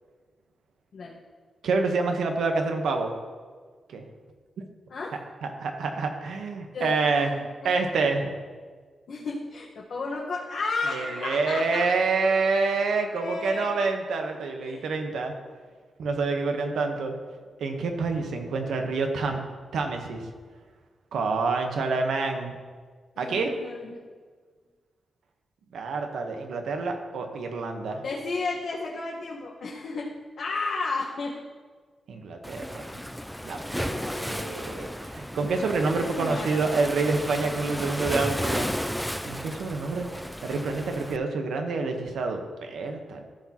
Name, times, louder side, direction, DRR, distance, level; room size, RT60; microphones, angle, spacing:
voice 1, 1.6-3.1 3.9-4.0 4.6-4.7 5.6-7.3 7.6-8.3 10.9-15.3 16.0-17.2 17.6-19.4 19.7-20.3 21.1-22.6 23.2-23.5 25.7-28.0 32.1-32.9 33.4-38.7 39.3-40.1 40.4-43.2, right 4 dB, 85° right, 4 dB, 1.1 m, -27 dB
voice 2, 6.7-7.3 7.6-8.1 9.1-11.8 13.1-13.8 14.6-14.9 23.2-24.0 28.0-30.1 30.4-31.3 33.6-34.3 35.8-36.6, left 3 dB, 65° left, -5 dB, 1.3 m, -33 dB
Waves surf, 32.4-41.2, equal, ahead, 0.3 m, -33 dB
14.5 x 6.1 x 3.0 m, 1.5 s
cardioid pair, 110°, 0 cm